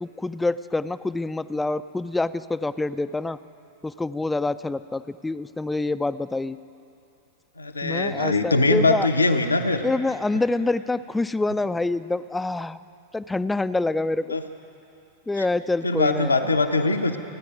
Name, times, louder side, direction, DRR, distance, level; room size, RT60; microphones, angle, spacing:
voice 1, 0.0-3.4 3.8-6.6 7.8-9.1 9.8-12.8 13.1-14.4 15.3-16.5, left 2 dB, 10° left, 13 dB, 0.5 m, -26 dB
voice 2, 7.6-9.9 14.3-14.4 15.4-15.5 15.8-17.2, left 3 dB, 80° left, 6 dB, 1.1 m, -22 dB
29.0 x 10.5 x 9.3 m, 2.7 s
figure-of-eight pair, 90°, 0 cm